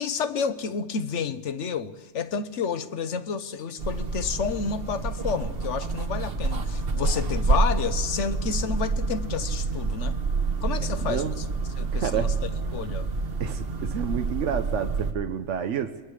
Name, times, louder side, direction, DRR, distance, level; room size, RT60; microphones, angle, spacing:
voice 1, 0.0-10.2 10.6-11.2 11.8-12.3 12.7-13.1, left 6 dB, 80° left, 1.2 m, -30 dB
sound 1, 3.8-15.1, right 3 dB, 55° right, 1.4 m, -28 dB
voice 2, 10.8-11.4 11.9-12.4 13.4-16.0, right 8 dB, 90° right, 1.2 m, -30 dB
28.0 x 21.0 x 4.9 m
omnidirectional pair, 1.2 m